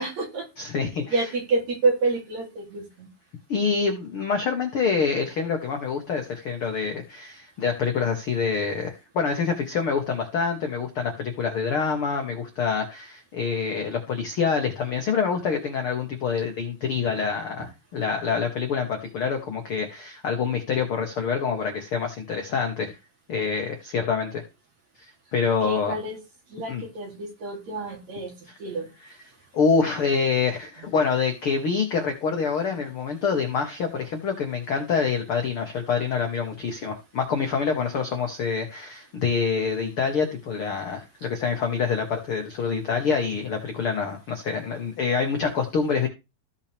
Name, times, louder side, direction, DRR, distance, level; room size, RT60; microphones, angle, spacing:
voice 1, 0.0-0.5 1.1-3.1 25.6-26.2 26.5-28.3 28.6-28.9, right 3 dB, 50° right, 0 dB, 4.1 m, -28 dB
voice 2, 0.6-1.3 3.5-23.0 23.3-24.4 25.3-26.0 26.7-26.8 28.5-28.6 29.0-29.2 29.5-46.1, left 5 dB, 60° left, 4 dB, 1.4 m, -26 dB
15.0 x 5.7 x 3.4 m, 0.26 s
omnidirectional pair, 4.3 m